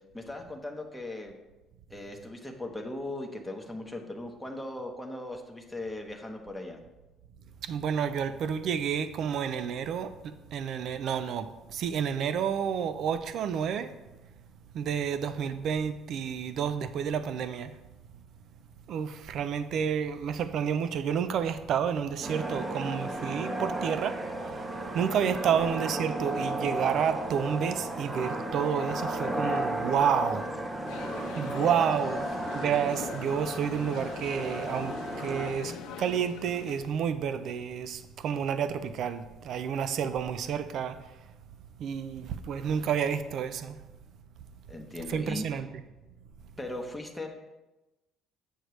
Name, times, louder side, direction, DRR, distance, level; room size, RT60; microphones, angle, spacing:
voice 1, 0.1-1.4 1.9-6.8 25.4-25.6 44.7-45.6 46.6-47.3, left 1 dB, 5° left, 1.0 m, -38 dB
voice 2, 7.6-13.9 14.7-17.7 18.9-24.2 24.5-24.7 24.9-30.5 31.4-32.3 32.5-41.0 41.8-43.8 45.1-45.7, right 7 dB, 60° right, 0.5 m, -30 dB
sound 1, 22.2-35.5, right 1 dB, 20° right, 0.8 m, -34 dB
sound 2, 30.9-37.0, left 6 dB, 80° left, 0.8 m, -42 dB
8.0 x 6.4 x 3.1 m
cardioid pair, 115°, 0 cm